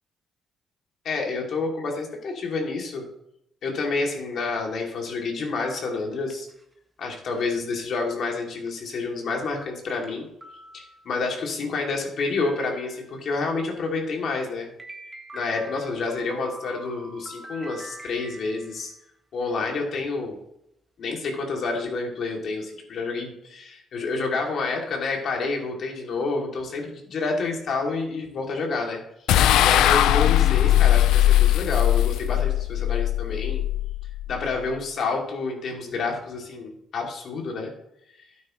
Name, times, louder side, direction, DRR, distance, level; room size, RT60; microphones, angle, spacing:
voice 1, 1.0-3.1 3.6-6.5 7.0-10.3 10.7-14.7 15.3-18.9 19.3-20.4 21.0-33.6 34.3-37.7, left 3 dB, 65° left, 0 dB, 3.0 m, -29 dB
sound 1, 6.1-6.7 7.4-7.5 8.1-8.2 8.7-8.8 9.4-9.5 10.0-10.1 10.4-11.2 12.4-13.3 14.8-19.0, right 1 dB, 20° right, 1.7 m, -43 dB
sound 2, 29.3-34.6, left 13 dB, 90° left, 0.4 m, -20 dB
12.5 x 9.3 x 3.3 m, 0.78 s
cardioid pair, 90°, 0 cm